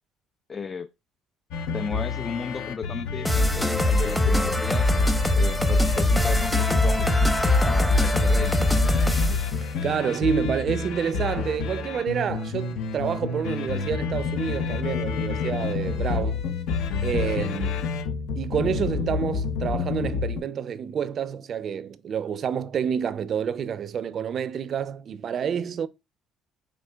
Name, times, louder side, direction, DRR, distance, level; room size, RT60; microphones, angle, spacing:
voice 1, 0.5-0.9 1.7-4.9 5.3-7.1 7.6-8.6, left 5 dB, 35° left, 0.3 m, -34 dB
sound 1, 1.5-20.4, left 5 dB, 70° left, 0.6 m, -29 dB
sound 2, 3.3-9.5, left 1 dB, 5° left, 0.7 m, -22 dB
voice 2, 9.8-16.4 17.0-18.0 18.4-25.9, right 7 dB, 55° right, 0.4 m, -28 dB
5.0 x 3.1 x 2.2 m
hypercardioid pair, 65°, 0 cm